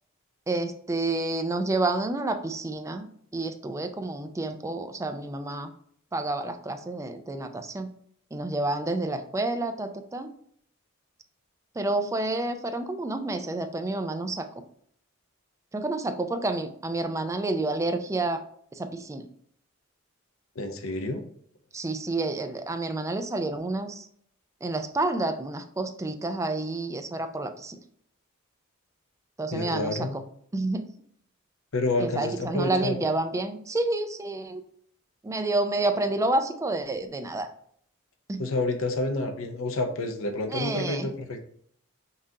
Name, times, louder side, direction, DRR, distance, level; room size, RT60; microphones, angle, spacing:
voice 1, 0.5-3.1 3.3-5.7 6.1-7.9 8.3-10.3 11.8-14.5 15.7-18.4 18.8-19.3 21.7-24.1 24.6-27.8 29.4-30.1 30.5-30.9 32.0-34.6 35.2-37.5 38.3-38.4 40.5-41.1, right 2 dB, 15° right, 7 dB, 0.3 m, -29 dB
voice 2, 20.6-21.2 29.5-30.2 31.7-33.0 38.4-41.4, left 2 dB, 65° left, 6 dB, 0.6 m, -29 dB
5.5 x 2.5 x 2.7 m, 0.64 s
head